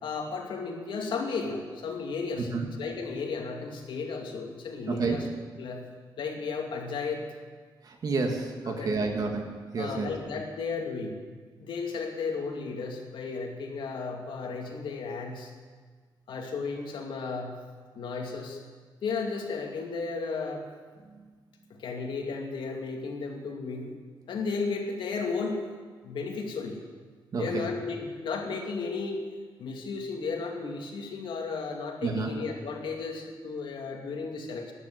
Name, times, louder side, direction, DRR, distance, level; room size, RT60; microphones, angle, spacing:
voice 1, 0.0-2.5 2.8-5.3 5.5-5.9 6.2-7.2 8.6-9.2 9.8-11.2 11.6-15.5 16.3-17.6 17.9-18.6 19.0-20.7 21.7-24.0 24.3-25.6 26.0-26.8 27.4-29.3 29.6-34.7, left 4 dB, 75° left, 1 dB, 2.5 m, -34 dB
voice 2, 7.8-10.1 27.3-27.7 32.0-32.3, right 4 dB, 50° right, 2 dB, 2.1 m, -30 dB
13.5 x 9.6 x 9.6 m, 1.5 s
wide cardioid pair, 170°, 8 cm